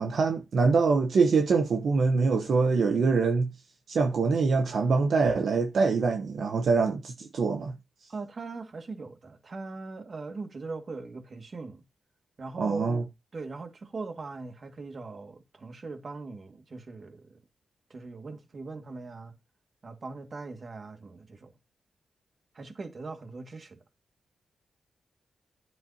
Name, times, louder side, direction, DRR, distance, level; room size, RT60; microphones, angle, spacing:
voice 1, 0.0-3.5 3.9-7.7 12.6-13.0, right 4 dB, 70° right, 1.0 m, -24 dB
voice 2, 8.1-11.8 12.4-13.0 13.3-17.4 17.9-19.3 19.8-21.5 22.5-23.8, right 3 dB, 50° right, 2.0 m, -40 dB
10.0 x 7.5 x 2.9 m
cardioid pair, 75°, 0 cm